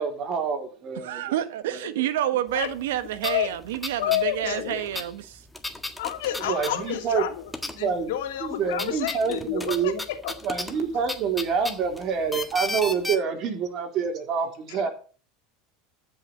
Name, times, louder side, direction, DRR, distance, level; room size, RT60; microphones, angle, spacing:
voice 1, 0.0-1.3 1.7-1.8 6.5-7.3 7.8-8.1 8.4-10.0 10.4-14.9, right 6 dB, 50° right, 3.9 m, -27 dB
voice 2, 1.0-5.4, right 12 dB, 80° right, 1.2 m, -28 dB
sound 1, 2.8-2.9 3.2-4.3 4.5-7.2 7.5-8.1 8.4-13.2, left 2 dB, 10° left, 1.6 m, -34 dB
voice 3, 3.2-3.6 4.0-5.0 6.0-7.5 7.8-10.3 14.7-14.9, left 12 dB, 80° left, 2.6 m, -30 dB
13.5 x 6.5 x 7.7 m
hypercardioid pair, 100°, 0 cm